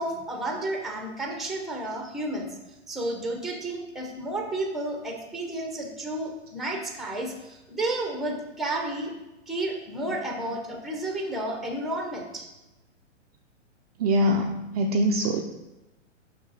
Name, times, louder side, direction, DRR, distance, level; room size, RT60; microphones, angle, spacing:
voice 1, 0.0-2.5 2.9-9.1 9.5-12.5, right 1 dB, ahead, 2 dB, 0.7 m, -31 dB
voice 2, 14.0-15.4, equal, 35° right, 1 dB, 0.4 m, -23 dB
6.1 x 5.9 x 4.1 m, 1.0 s
hypercardioid pair, 135°, 37 cm